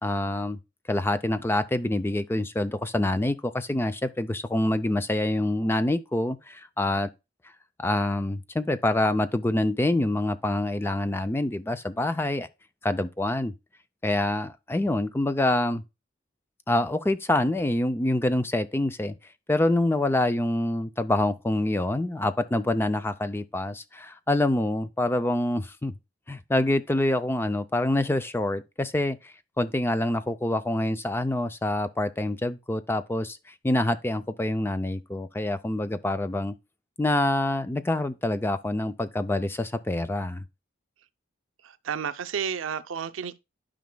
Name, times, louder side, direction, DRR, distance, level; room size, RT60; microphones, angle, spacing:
voice 1, 0.0-0.6 0.9-7.1 7.8-12.5 12.8-13.5 14.0-15.8 16.7-19.1 19.5-25.9 26.3-36.5 37.0-40.4, left 1 dB, 10° left, 0.4 m, -26 dB
voice 2, 41.6-43.4, right 7 dB, 85° right, 0.5 m, -31 dB
12.5 x 5.1 x 2.2 m
head